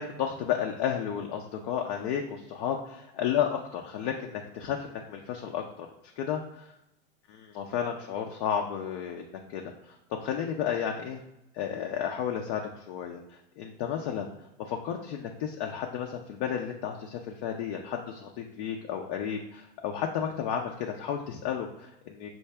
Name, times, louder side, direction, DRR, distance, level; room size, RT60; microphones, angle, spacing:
voice 1, 0.0-5.9 6.2-6.7 7.3-10.0 10.2-11.2 11.5-13.2 13.6-14.3 14.7-22.3, left 8 dB, 55° left, 2 dB, 0.6 m, -32 dB
5.7 x 2.6 x 3.2 m, 0.89 s
supercardioid pair, 130°, 31 cm